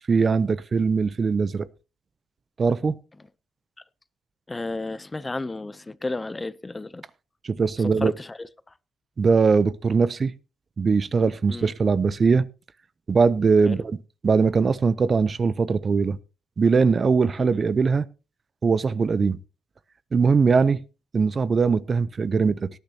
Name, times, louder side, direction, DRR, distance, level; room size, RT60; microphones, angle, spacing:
voice 1, 0.1-1.7 2.6-3.0 7.4-8.1 9.2-10.3 10.8-12.5 13.1-13.9 14.2-16.2 16.6-18.1 18.6-19.4 20.1-20.8 21.1-22.7, right 5 dB, 40° right, 0.6 m, -21 dB
voice 2, 4.5-7.0 7.8-8.5 11.5-11.7 13.7-13.8, left 2 dB, 20° left, 0.6 m, -32 dB
18.0 x 10.5 x 2.8 m
cardioid pair, 90°, 0 cm